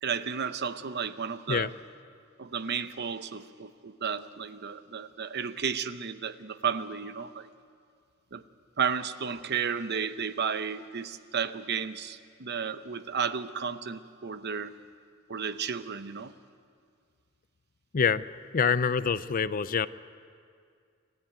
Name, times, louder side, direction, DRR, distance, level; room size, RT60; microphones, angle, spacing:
voice 1, 0.0-1.7 2.4-7.5 8.3-8.4 8.8-14.7 15.3-16.3, right 6 dB, 55° right, 12 dB, 0.8 m, -33 dB
voice 2, 17.9-18.2 18.5-19.9, left 6 dB, 40° left, 15 dB, 0.5 m, -26 dB
29.5 x 13.5 x 8.9 m, 2.2 s
head